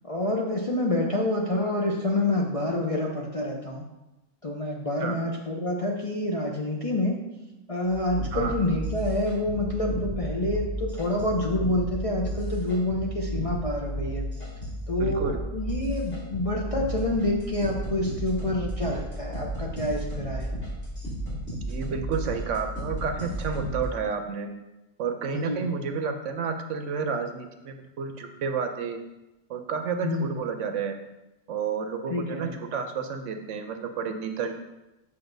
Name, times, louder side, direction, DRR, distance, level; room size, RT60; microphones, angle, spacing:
voice 1, 0.0-3.8 4.4-7.2 7.7-14.3 14.9-20.5 25.3-25.7 30.0-30.4 32.1-32.5, left 1 dB, 35° left, -2 dB, 0.6 m, -27 dB
sound 1, 7.9-23.8, right 1 dB, 60° left, 2.4 m, -33 dB
voice 2, 15.0-15.4 21.7-24.5 25.0-29.0 29.5-30.9 31.5-34.5, right 5 dB, 70° right, 6 dB, 0.9 m, -30 dB
7.8 x 5.6 x 2.6 m, 0.98 s
omnidirectional pair, 1.4 m